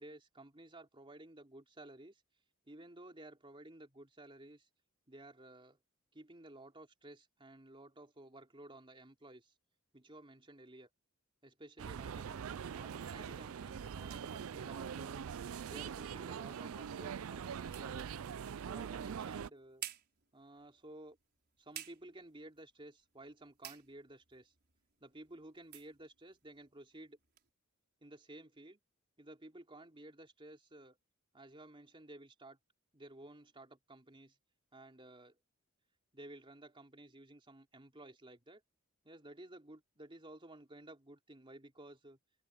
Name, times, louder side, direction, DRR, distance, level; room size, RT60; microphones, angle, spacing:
voice 1, 0.0-2.2 2.7-4.7 5.1-5.8 6.1-9.5 9.9-10.9 11.4-15.2 15.7-18.2 18.6-19.8 20.3-21.2 21.6-24.5 25.0-27.2 28.0-28.8 29.2-31.0 31.3-32.6 32.9-34.4 34.7-35.4 36.1-38.6 39.0-42.2, right 1 dB, 25° right, 3.3 m, -54 dB
sound 1, 11.8-19.5, right 7 dB, 75° right, 0.4 m, -43 dB
sound 2, 19.2-27.5, right 11 dB, 50° right, 5.6 m, -55 dB
head